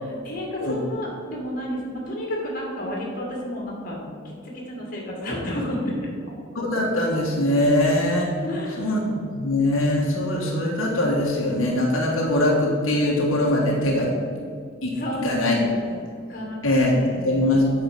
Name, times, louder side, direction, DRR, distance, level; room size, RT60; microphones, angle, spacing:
voice 1, 0.0-6.1 8.4-8.9 14.9-16.0 16.3-16.6 16.9-17.4, left 1 dB, 40° left, -2 dB, 2.1 m, -31 dB
voice 2, 6.5-8.3 8.8-14.1 14.8-15.6 16.6-16.9 17.2-17.6, left 1 dB, 85° left, -2 dB, 1.5 m, -22 dB
8.4 x 4.8 x 6.7 m, 2.2 s
head